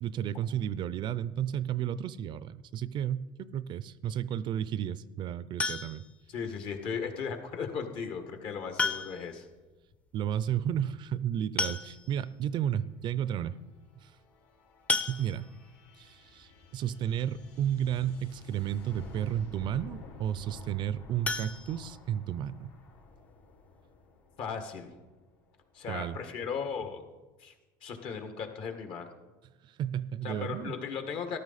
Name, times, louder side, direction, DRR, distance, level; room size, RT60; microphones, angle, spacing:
voice 1, 0.0-6.0 10.1-13.6 14.0-14.1 15.1-15.5 16.0-22.7 25.9-26.2 29.6-30.7, right 10 dB, 50° right, 17 dB, 0.5 m, -32 dB
sound 1, 5.6-6.2 7.7-7.8 8.8-9.4 9.7-9.8 10.1-10.2 11.2-11.3 11.6-12.3 12.9-13.0 13.3-13.5 14.9-15.7 21.2-22.4 22.8-22.9 23.3-23.4 23.8-23.9, left 3 dB, 10° left, 0.6 m, -33 dB
voice 2, 6.3-9.5 24.4-24.9 25.7-27.0 27.4-27.5 27.8-29.1 30.2-31.4, left 6 dB, 60° left, 6 dB, 1.8 m, -36 dB
sound 2, 12.6-26.0, left 3 dB, 75° left, 4.6 m, -52 dB
13.5 x 12.0 x 4.2 m, 1.2 s
supercardioid pair, 105°, 10 cm